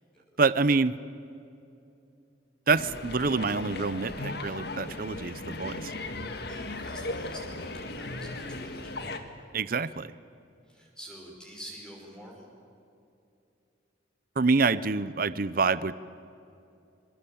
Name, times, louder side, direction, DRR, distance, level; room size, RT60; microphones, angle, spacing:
voice 1, 0.4-0.9 2.7-5.9 9.5-10.1 14.4-15.9, right 4 dB, 50° right, 17 dB, 0.7 m, -26 dB
sound 1, 2.7-9.2, left 2 dB, 60° left, 2.1 m, -37 dB
voice 2, 5.8-6.2 6.5-9.3 10.6-12.5, right 1 dB, 5° left, -1 dB, 5.4 m, -47 dB
26.0 x 23.5 x 8.6 m, 2.7 s
head